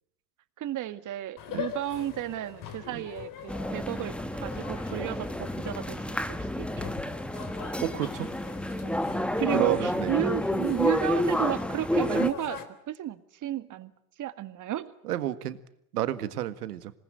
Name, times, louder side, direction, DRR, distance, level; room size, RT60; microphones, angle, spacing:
voice 1, 0.6-6.8 9.4-12.6 12.9-13.9 14.2-14.9, right 12 dB, 40° right, 11 dB, 2.0 m, -32 dB
sound 1, 1.4-12.6, left 9 dB, 45° left, 3.6 m, -43 dB
sound 2, 3.5-12.3, left 1 dB, ahead, 1.3 m, -30 dB
voice 2, 7.8-8.3 9.5-10.2 15.0-15.6 15.9-16.9, right 12 dB, 90° right, 12 dB, 1.8 m, -31 dB
26.5 x 19.5 x 9.2 m, 0.79 s
supercardioid pair, 100°, 44 cm